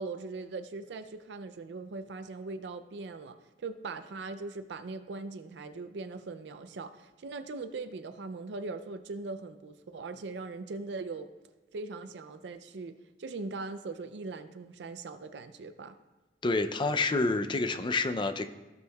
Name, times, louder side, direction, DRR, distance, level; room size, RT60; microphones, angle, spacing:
voice 1, 0.0-11.3 11.7-16.0, right 3 dB, 70° right, 10 dB, 0.4 m, -40 dB
voice 2, 16.4-18.5, left 3 dB, 25° left, 9 dB, 0.4 m, -28 dB
15.0 x 6.3 x 2.3 m, 1.1 s
head